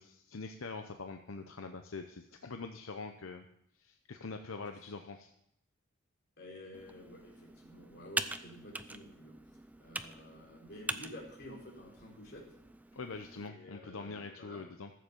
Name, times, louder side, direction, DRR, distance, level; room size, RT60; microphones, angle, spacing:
voice 1, 0.0-3.4 3.8-5.3 12.9-14.9, left 4 dB, 80° left, 5 dB, 0.8 m, -44 dB
voice 2, 6.4-9.4 9.8-12.4 13.4-14.6, left 1 dB, 50° left, -2 dB, 4.4 m, -51 dB
Computer keyboard, 6.7-13.5, right 2 dB, 10° right, 0.4 m, -43 dB
14.0 x 7.7 x 7.0 m, 0.76 s
head